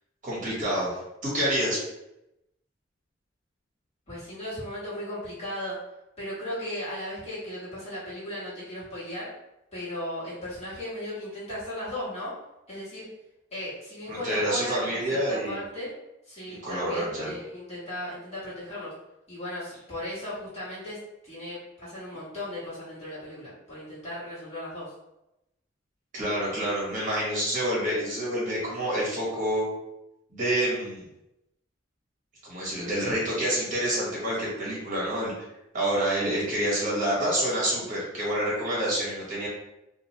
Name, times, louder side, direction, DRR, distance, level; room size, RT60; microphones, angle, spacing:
voice 1, 0.2-1.0 1.2-1.8 14.1-15.6 16.5-17.4 26.1-29.7 30.3-31.1 32.4-35.3 35.7-39.5, right 1 dB, 40° right, -5 dB, 1.1 m, -28 dB
voice 2, 4.1-5.7 6.2-9.3 9.7-12.3 12.7-13.1 13.5-15.9 16.2-18.9 19.3-21.0 21.2-24.9, left 1 dB, 30° left, -10 dB, 1.3 m, -36 dB
2.4 x 2.2 x 2.9 m, 0.89 s
head